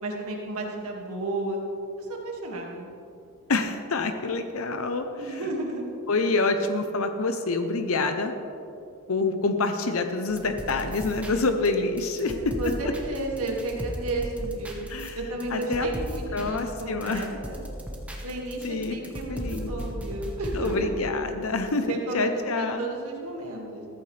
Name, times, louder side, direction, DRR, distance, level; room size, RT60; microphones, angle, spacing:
voice 1, 0.0-1.6 2.0-2.9 5.2-5.9 12.2-14.8 15.1-17.6 18.2-20.9 21.9-23.9, right 2 dB, 85° right, -1 dB, 2.1 m, -32 dB
voice 2, 3.5-5.4 6.1-8.3 9.1-12.7 14.9-15.2 15.5-15.9 16.3-17.3 18.6-19.0 19.3-19.7 20.5-22.9, left 3 dB, 70° left, 7 dB, 0.7 m, -27 dB
sound 1, 10.3-11.7 12.0-20.8, equal, 5° right, 1.3 m, -37 dB
14.5 x 14.5 x 3.3 m, 2.7 s
head